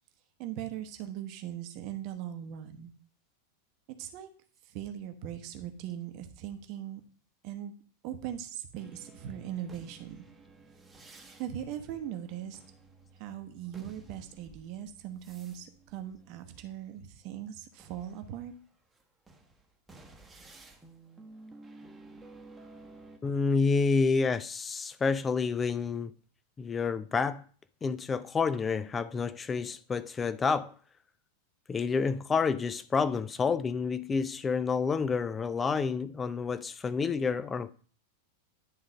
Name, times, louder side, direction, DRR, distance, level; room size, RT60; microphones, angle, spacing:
voice 1, 0.4-2.9 4.0-4.3 4.7-7.0 7.4-7.7 8.0-10.2 11.4-12.6 13.2-18.5, right 10 dB, 45° right, 1.0 m, -40 dB
sound 1, 8.7-17.2 17.7-23.2, right 3 dB, 10° right, 1.0 m, -54 dB
voice 2, 23.2-26.1 26.6-27.4 27.8-30.7 31.7-37.7, left 5 dB, 20° left, 0.4 m, -29 dB
10.0 x 3.8 x 5.0 m
figure-of-eight pair, 90°, 0 cm